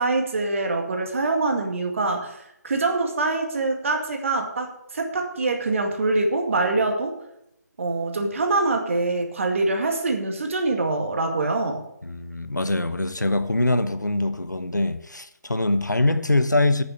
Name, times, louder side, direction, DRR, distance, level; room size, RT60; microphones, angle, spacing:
voice 1, 0.0-7.1 7.8-11.8, right 3 dB, 45° right, 2.1 m, -24 dB
voice 2, 12.0-16.8, left 2 dB, 90° left, 1.0 m, -23 dB
9.0 x 7.1 x 7.9 m
figure-of-eight pair, 150°, 9 cm